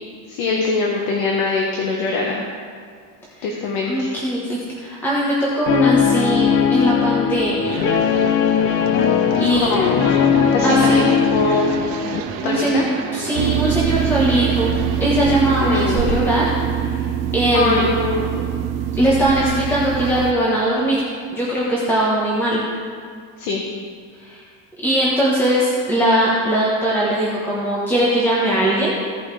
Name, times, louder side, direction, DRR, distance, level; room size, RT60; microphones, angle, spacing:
voice 1, 0.3-2.4 3.4-4.1 9.6-10.0 10.5-11.1 11.3-11.7 12.4-12.8 15.6-16.2 17.5-18.4 23.4-23.6, left 3 dB, 65° left, -1 dB, 1.3 m, -22 dB
voice 2, 3.9-7.9 9.4-9.7 10.6-11.2 12.4-16.5 16.7-17.1 17.3-17.9 19.0-21.0 21.3-22.6 24.2-24.4 24.8-28.9, right 1 dB, 5° left, -6 dB, 1.1 m, -20 dB
Guitar, 5.7-12.2, left 8 dB, 35° left, 0.4 m, -18 dB
sound 1, 7.6-16.0, right 7 dB, 75° right, 1.1 m, -31 dB
sound 2, 13.4-20.3, right 9 dB, 40° right, 0.5 m, -23 dB
16.0 x 5.4 x 3.3 m, 2.1 s
cardioid pair, 160°, 40 cm